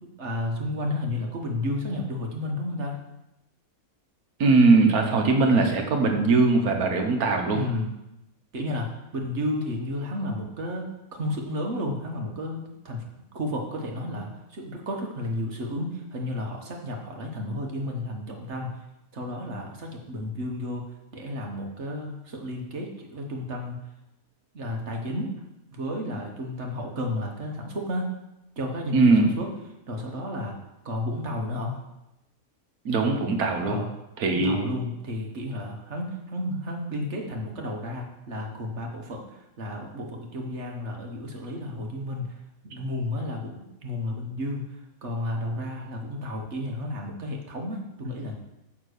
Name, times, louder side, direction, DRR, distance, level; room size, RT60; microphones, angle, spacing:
voice 1, 0.0-3.0 7.5-7.9 8.5-18.7 19.1-20.8 21.1-23.8 24.5-25.3 25.7-28.1 28.6-29.5 29.9-30.6 30.8-31.8 33.6-33.9 34.2-42.3 42.6-44.6 45.0-48.3, left 1 dB, 50° right, 1 dB, 1.4 m, -32 dB
voice 2, 4.4-7.6 26.1-26.2 28.9-29.3 32.8-33.8 34.2-34.7, right 3 dB, 85° right, 3 dB, 1.6 m, -20 dB
9.1 x 3.6 x 6.6 m, 0.91 s
omnidirectional pair, 1.5 m